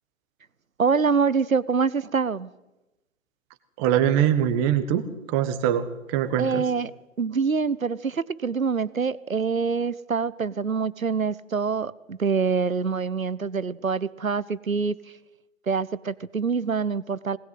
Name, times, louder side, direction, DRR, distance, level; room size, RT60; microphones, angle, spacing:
voice 1, 0.8-2.5 6.4-6.9 7.2-15.0 15.7-17.4, right 5 dB, 90° right, 19 dB, 1.1 m, -25 dB
voice 2, 3.8-6.6, right 10 dB, 20° right, 11 dB, 1.5 m, -23 dB
21.0 x 19.5 x 7.8 m, 0.97 s
figure-of-eight pair, 135°, 40 cm